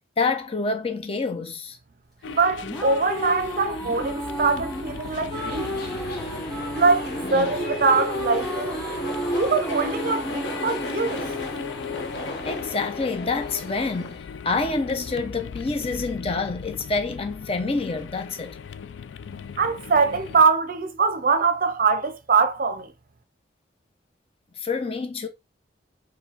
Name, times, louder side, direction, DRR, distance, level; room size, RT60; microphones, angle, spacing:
voice 1, 0.2-1.8 7.2-7.6 12.4-18.6 24.6-25.3, left 3 dB, 35° left, 0.7 m, -27 dB
sound 1, 2.2-20.4, left 7 dB, 90° left, 0.3 m, -38 dB
voice 2, 2.3-5.7 6.7-8.9 9.4-11.2 19.6-22.9, right 4 dB, 50° right, 0.5 m, -23 dB
sound 2, 2.4-13.4, equal, ahead, 1.8 m, -33 dB
sound 3, 5.3-14.2, equal, 60° left, 1.4 m, -34 dB
4.8 x 2.2 x 4.0 m
head